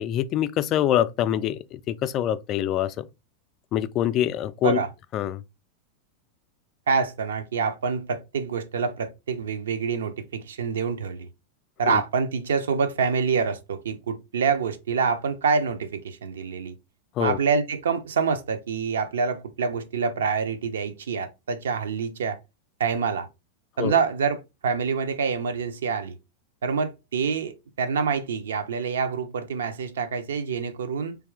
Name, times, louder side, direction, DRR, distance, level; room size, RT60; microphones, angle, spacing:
voice 1, 0.0-3.1 3.7-4.8 5.1-5.4 11.9-12.0 17.2-17.4 23.8-24.0, left 11 dB, 35° left, 0.3 m, -25 dB
voice 2, 6.9-11.3 11.8-16.7 17.2-22.4 22.8-23.3 23.8-26.1 26.6-31.2, right 5 dB, 65° right, 0.5 m, -26 dB
3.4 x 3.0 x 3.4 m
figure-of-eight pair, 90°, 0 cm